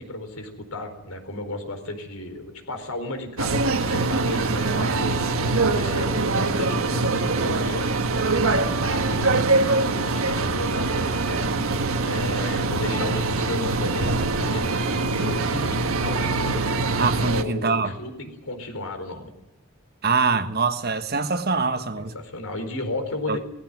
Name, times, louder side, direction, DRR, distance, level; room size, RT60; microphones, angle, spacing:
voice 1, 0.0-5.4 5.7-7.9 8.8-9.4 10.0-11.4 12.0-16.6 17.2-19.3 22.0-23.4, left 2 dB, 85° left, 4.4 m, -33 dB
sound 1, 3.4-17.4, right 3 dB, 75° right, 1.5 m, -23 dB
voice 2, 17.0-17.9 20.0-22.1 23.3-23.4, right 4 dB, 50° right, 1.4 m, -24 dB
18.5 x 15.5 x 9.4 m
head